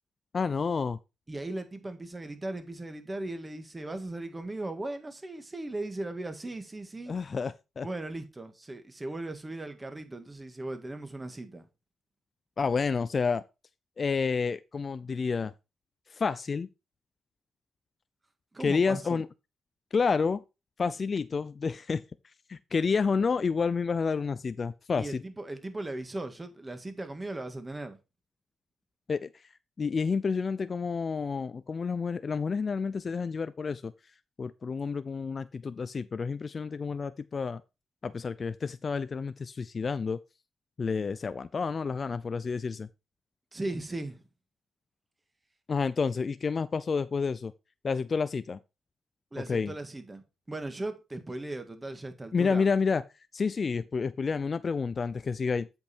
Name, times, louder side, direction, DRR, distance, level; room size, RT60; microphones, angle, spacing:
voice 1, 0.3-1.0 7.1-7.9 12.6-13.4 14.0-15.5 16.1-16.7 18.6-19.3 19.9-20.4 20.8-22.0 22.5-25.2 29.1-29.3 29.8-33.9 34.4-37.6 38.0-40.2 40.8-42.9 45.7-47.5 47.8-48.6 49.5-49.7 52.3-53.0 53.3-55.7, left 5 dB, 45° left, 0.4 m, -29 dB
voice 2, 1.3-7.1 7.8-11.6 18.5-19.2 24.9-28.0 43.5-44.2 49.3-52.6, right 2 dB, 20° right, 1.8 m, -38 dB
8.1 x 5.3 x 4.4 m
cardioid pair, 70°, 0 cm